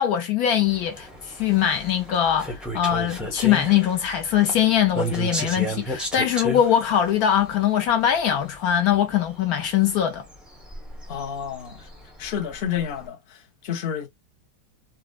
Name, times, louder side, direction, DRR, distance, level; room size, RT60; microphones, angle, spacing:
voice 1, 0.0-10.2, left 10 dB, 75° left, 1.1 m, -22 dB
sound 1, 0.6-13.1, right 1 dB, ahead, 0.6 m, -34 dB
voice 2, 11.1-11.8 12.2-13.2 13.6-14.1, left 8 dB, 45° left, 0.9 m, -29 dB
4.1 x 2.0 x 2.4 m
omnidirectional pair, 1.7 m